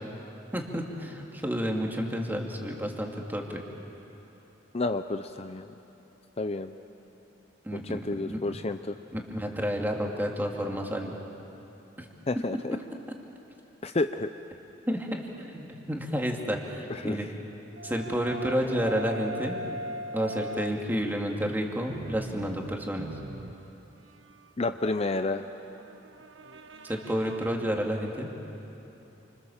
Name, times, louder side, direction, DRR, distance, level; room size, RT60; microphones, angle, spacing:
voice 1, 0.5-3.6 7.6-8.4 9.1-11.1 14.9-17.3 17.8-19.6 20.1-23.1 26.9-28.3, equal, 10° right, 1 dB, 2.6 m, -30 dB
voice 2, 4.7-5.7 6.4-6.7 7.8-8.9 12.3-12.8 13.8-14.3 16.9-17.2 24.6-25.4, left 2 dB, 35° left, 8 dB, 0.6 m, -30 dB
sound 1, 17.8-21.0 21.7-27.6, right 1 dB, 85° right, 1.2 m, -41 dB
29.5 x 26.0 x 7.3 m, 3.0 s
head